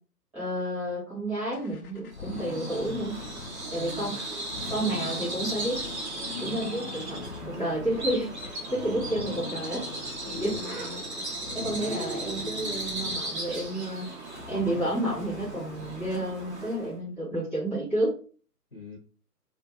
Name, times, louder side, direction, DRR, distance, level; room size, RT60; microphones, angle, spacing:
voice 1, 0.3-3.2 3.7-4.2 4.7-5.9 6.4-7.2 7.4-9.8 10.4-10.5 11.5-18.2, right 1 dB, 10° right, -13 dB, 1.1 m, -31 dB
sound 1, 1.5-16.9, left 5 dB, 60° left, 0.5 m, -42 dB
Bird vocalization bird call bird song, 2.1-16.9, right 2 dB, 45° right, 0.7 m, -37 dB
voice 2, 3.7-4.3 8.7-9.4 10.2-11.3 18.7-19.0, left 2 dB, 35° left, -4 dB, 0.8 m, -42 dB
2.5 x 2.4 x 2.5 m, 0.40 s
figure-of-eight pair, 145°, 50 cm